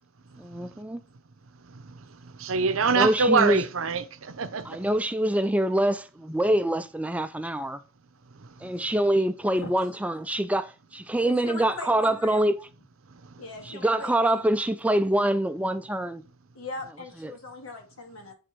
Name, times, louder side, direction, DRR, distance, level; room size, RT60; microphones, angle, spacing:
voice 1, 0.4-1.0 2.9-3.6 4.6-7.8 8.6-12.7 13.7-16.2 17.2-17.3, right 1 dB, 5° right, 0.4 m, -25 dB
voice 2, 2.4-4.8, right 4 dB, 75° right, 0.8 m, -24 dB
voice 3, 11.2-12.5 13.4-14.4 16.5-18.3, left 3 dB, 85° left, 2.5 m, -39 dB
8.0 x 3.7 x 4.5 m
head